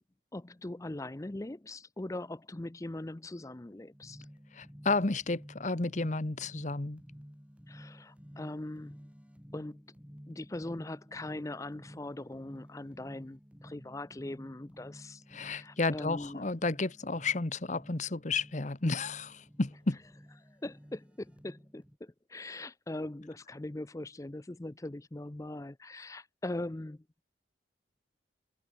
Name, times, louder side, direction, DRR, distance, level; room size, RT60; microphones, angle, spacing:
voice 1, 0.3-4.3 7.7-9.0 9.5-9.8 10.3-16.5 20.5-27.0, left 1 dB, 15° left, 0.5 m, -41 dB
sound 1, 3.9-22.0, equal, 5° right, 3.1 m, -53 dB
voice 2, 4.5-7.0 15.3-20.0, left 3 dB, 40° left, 1.0 m, -32 dB
head